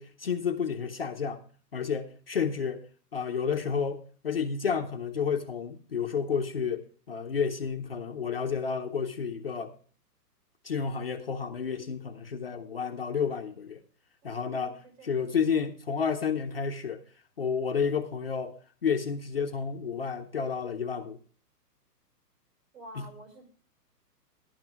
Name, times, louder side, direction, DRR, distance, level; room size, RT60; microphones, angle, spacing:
voice 1, 0.0-1.4 1.7-2.8 3.1-9.7 10.6-13.8 14.2-14.8 15.0-17.0 17.4-18.6 18.8-21.2 23.0-23.1, left 6 dB, 35° left, 0.7 m, -31 dB
voice 2, 14.2-15.3 22.7-23.4, right 1 dB, 50° right, 6.2 m, -49 dB
12.0 x 12.0 x 3.5 m
hypercardioid pair, 175°, 49 cm